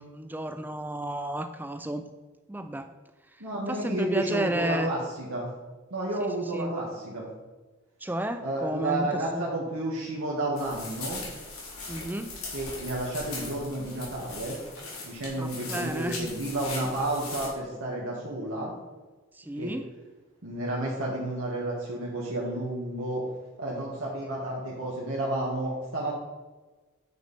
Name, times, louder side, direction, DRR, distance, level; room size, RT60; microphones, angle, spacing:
voice 1, 0.0-2.0 2.5-2.9 3.7-4.9 6.2-6.7 8.0-9.1 9.3-9.5 11.9-12.3 15.4-16.3 19.4-19.8, right 1 dB, 10° right, 8 dB, 0.3 m, -32 dB
voice 2, 3.4-5.5 5.9-7.3 8.4-11.2 12.5-14.6 15.0-18.7 19.5-19.7 20.4-23.2 23.6-26.1, right 1 dB, 80° right, -5 dB, 1.5 m, -31 dB
sound 1, 10.6-17.5, left 3 dB, 85° left, 2.9 m, -40 dB
9.0 x 5.4 x 4.1 m, 1.2 s
head